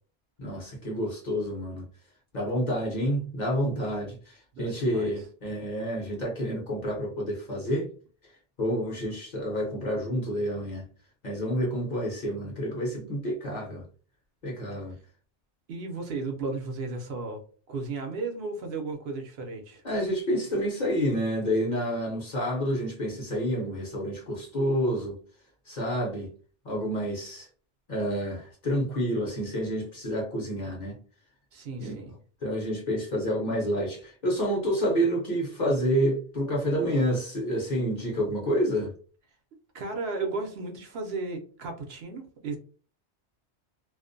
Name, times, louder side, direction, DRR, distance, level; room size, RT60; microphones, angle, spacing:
voice 1, 0.4-1.8 2.3-7.9 8.6-10.9 11.2-13.8 14.4-15.0 19.8-25.2 25.7-26.3 26.6-27.5 27.9-31.0 31.8-32.0 32.4-38.9, equal, 45° left, 0.8 m, -29 dB
voice 2, 4.5-5.1 15.7-17.4 17.7-19.8 31.5-32.1 39.7-42.6, right 3 dB, 65° right, 0.8 m, -34 dB
2.4 x 2.1 x 2.5 m
omnidirectional pair, 1.2 m